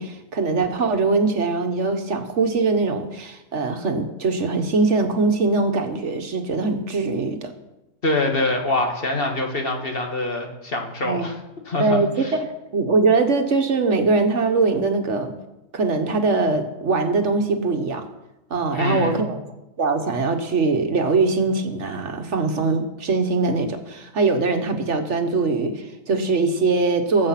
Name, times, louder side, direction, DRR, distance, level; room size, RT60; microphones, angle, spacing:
voice 1, 0.0-7.5 11.0-11.3 11.8-15.4 15.7-18.1 18.5-19.4 19.8-27.3, right 3 dB, 60° right, 6 dB, 1.4 m, -22 dB
voice 2, 8.0-11.4 11.7-12.3 18.7-19.2, left 2 dB, 45° left, 3 dB, 1.8 m, -25 dB
18.5 x 7.7 x 5.8 m, 0.97 s
omnidirectional pair, 1.4 m